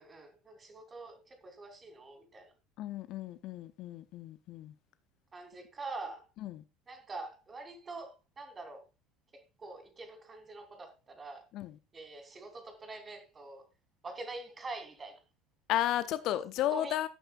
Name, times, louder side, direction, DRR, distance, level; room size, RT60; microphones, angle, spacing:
voice 1, 0.0-2.5 5.3-6.2 6.9-8.8 9.6-11.4 11.9-13.7 14.0-15.2 16.7-17.0, right 3 dB, 25° right, 3.0 m, -45 dB
voice 2, 2.8-4.7 6.4-6.6 11.5-11.7 15.7-17.1, left 13 dB, 50° left, 0.7 m, -33 dB
17.5 x 8.9 x 2.4 m
figure-of-eight pair, 65°, 0 cm